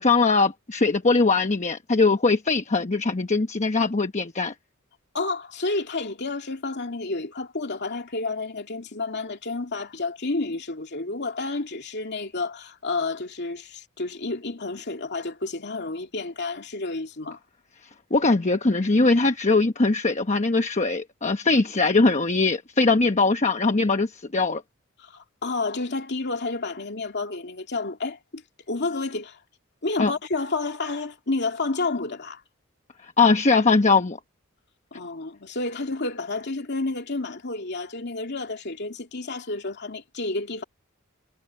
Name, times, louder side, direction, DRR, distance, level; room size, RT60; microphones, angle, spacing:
voice 1, 0.0-4.5 18.1-24.6 30.0-30.1 33.0-34.2, left 3 dB, 35° left, 1.0 m, -21 dB
voice 2, 5.1-17.4 25.0-28.4 28.7-29.4 29.8-32.4 34.9-40.6, left 3 dB, 55° left, 2.7 m, -30 dB
head